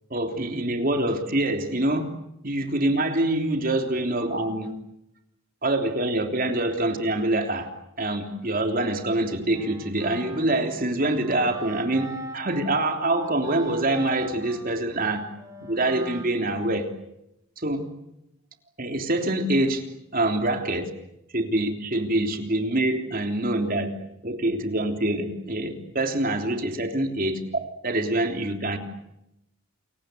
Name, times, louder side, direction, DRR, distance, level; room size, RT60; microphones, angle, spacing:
voice 1, 0.1-2.1 2.4-4.7 5.6-7.7 8.0-15.2 15.6-16.8 17.6-17.9 18.8-19.8 20.1-20.9 21.3-23.9 24.2-27.4 27.8-28.8, right 1 dB, 40° right, 5 dB, 3.3 m, -25 dB
Wind instrument woodwind instrument, 9.5-16.8, right 2 dB, 15° right, 7.1 m, -41 dB
29.5 x 24.0 x 7.9 m, 0.85 s
head